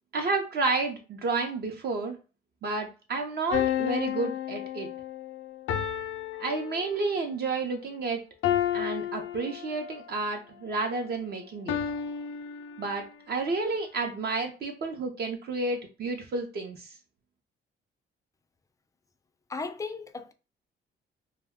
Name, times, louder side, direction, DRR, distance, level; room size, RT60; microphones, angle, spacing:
voice 1, 0.1-2.2 2.6-4.9 6.4-8.2 8.7-11.8 12.8-16.9, right 3 dB, 55° right, 0.6 m, -31 dB
sound 1, 3.5-7.3 8.4-10.0 11.7-13.2, left 10 dB, 85° left, 0.4 m, -32 dB
voice 2, 19.5-20.3, left 4 dB, 15° left, 0.3 m, -36 dB
2.2 x 2.2 x 3.5 m
cardioid pair, 90°, 20 cm